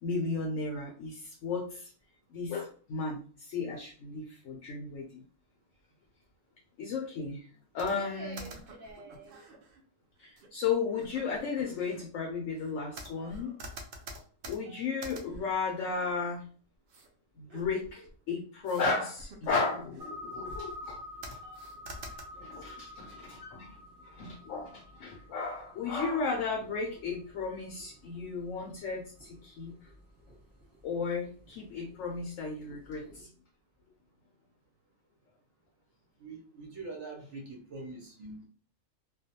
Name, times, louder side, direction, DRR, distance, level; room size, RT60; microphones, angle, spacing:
voice 1, 0.0-1.9 2.3-5.2 6.8-7.5 7.7-8.4 10.2-13.5 14.4-16.5 17.4-21.0 21.3-21.4 22.4-23.8 24.0-29.7 30.8-33.3, left 4 dB, 65° left, 0 dB, 0.8 m, -34 dB
sound 1, 7.8-9.8 10.4-10.5 10.9-12.0 12.6-16.4 16.9-17.1 17.5-18.2 18.6-18.9 19.2-20.1 20.4-20.9 21.2-22.2, right 1 dB, 80° right, 0.5 m, -47 dB
sound 2, 20.0-33.2, left 1 dB, 30° right, 1.0 m, -49 dB
voice 2, 36.2-38.5, right 3 dB, 60° right, -1 dB, 0.9 m, -43 dB
2.4 x 2.2 x 2.7 m, 0.42 s
omnidirectional pair, 1.6 m